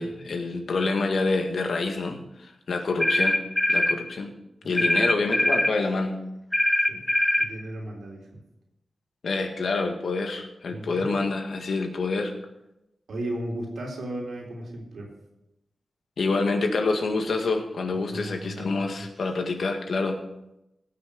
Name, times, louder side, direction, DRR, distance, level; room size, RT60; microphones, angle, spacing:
voice 1, 0.0-3.4 3.7-4.3 4.6-6.2 9.2-12.3 16.2-20.2, left 3 dB, 70° left, 4 dB, 1.8 m, -27 dB
sound 1, 3.0-4.0 4.8-5.8 6.5-7.5, left 1 dB, 15° left, 1.1 m, -22 dB
voice 2, 7.4-8.4 10.7-11.2 13.1-15.1 18.1-18.9, right 1 dB, 85° right, -1 dB, 3.5 m, -35 dB
17.0 x 6.5 x 5.2 m, 0.89 s
wide cardioid pair, 90°, 0 cm